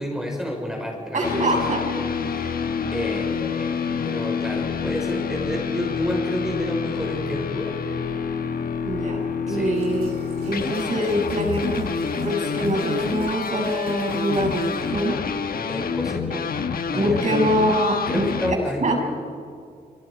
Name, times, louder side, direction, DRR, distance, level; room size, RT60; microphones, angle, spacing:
voice 1, 0.0-1.8 2.2-2.6 2.9-7.8 9.5-9.8 15.7-16.5 16.9-17.5 18.1-18.9, equal, 5° right, -1 dB, 5.7 m, -30 dB
voice 2, 1.1-1.8 8.8-10.1 10.4-11.9 12.2-15.2 16.9-18.3 18.8-19.0, right 1 dB, 50° right, 1 dB, 6.6 m, -24 dB
sound 1, 1.2-18.6, left 6 dB, 65° left, 1.3 m, -27 dB
Water tap faucet / Sink (filling or washing), 9.4-15.7, right 3 dB, 80° right, 5.7 m, -45 dB
28.5 x 26.5 x 5.2 m, 2.2 s
cardioid pair, 100°, 17 cm